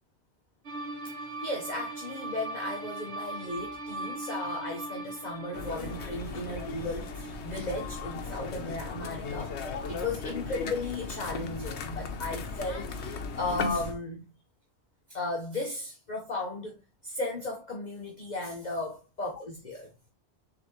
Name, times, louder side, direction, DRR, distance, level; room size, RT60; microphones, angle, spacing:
sound 1, 0.6-11.6, right 3 dB, 85° right, 1.6 m, -41 dB
voice 1, 1.2-14.2 15.1-19.9, left 2 dB, 45° left, 1.0 m, -35 dB
sound 2, 5.5-13.9, left 5 dB, 90° left, 1.0 m, -37 dB
4.7 x 3.5 x 3.0 m
omnidirectional pair, 1.1 m